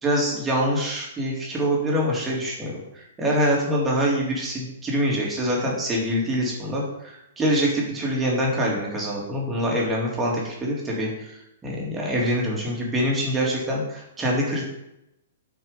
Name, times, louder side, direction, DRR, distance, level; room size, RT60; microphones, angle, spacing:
voice 1, 0.0-14.6, equal, 15° right, -3 dB, 3.1 m, -25 dB
9.1 x 5.5 x 5.4 m, 0.86 s
figure-of-eight pair, 110°, 0 cm